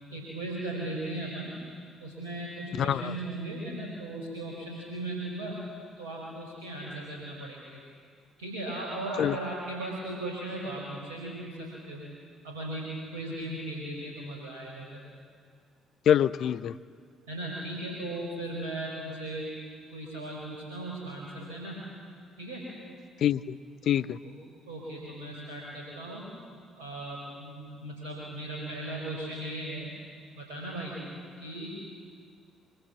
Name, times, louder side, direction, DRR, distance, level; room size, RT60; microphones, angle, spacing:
voice 1, 0.1-1.5 2.0-5.6 6.0-7.8 8.4-12.0 12.4-12.9 13.1-15.0 17.3-19.5 19.9-21.8 22.4-22.6 24.2-24.4 24.7-26.3 26.7-29.9 30.4-31.0 31.4-31.8, right 1 dB, 75° right, -3 dB, 5.3 m, -37 dB
voice 2, 2.8-3.1 9.2-9.4 16.1-16.7 23.2-23.6 23.9-24.2, left 10 dB, 55° left, 15 dB, 0.7 m, -25 dB
24.5 x 24.5 x 8.6 m, 2.1 s
figure-of-eight pair, 45°, 0 cm